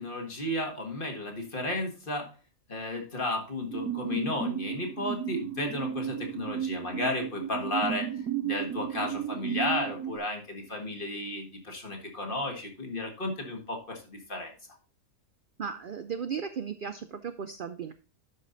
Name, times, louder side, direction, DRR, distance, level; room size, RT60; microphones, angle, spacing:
voice 1, 0.0-2.3 2.7-14.5, left 2 dB, 40° left, 2 dB, 1.8 m, -33 dB
sound 1, 3.7-10.2, right 9 dB, 80° right, 1.3 m, -34 dB
voice 2, 15.6-17.9, right 7 dB, 60° right, 10 dB, 0.5 m, -36 dB
11.5 x 5.1 x 3.9 m, 0.35 s
omnidirectional pair, 1.5 m